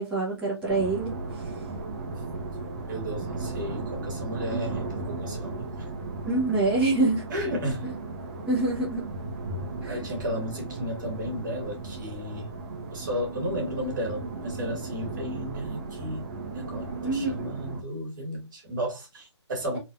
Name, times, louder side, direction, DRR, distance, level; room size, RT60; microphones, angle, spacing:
voice 1, 0.0-1.5 6.2-7.3 8.5-9.0 9.8-10.0 17.0-17.3, right 2 dB, 5° right, 1.3 m, -26 dB
sound 1, 0.7-17.8, right 3 dB, 25° right, 0.9 m, -36 dB
voice 2, 2.9-5.9 7.3-7.9 9.9-12.5 12.9-16.3 16.5-19.8, equal, 40° right, 2.2 m, -34 dB
4.1 x 3.3 x 2.5 m
figure-of-eight pair, 140°, 15 cm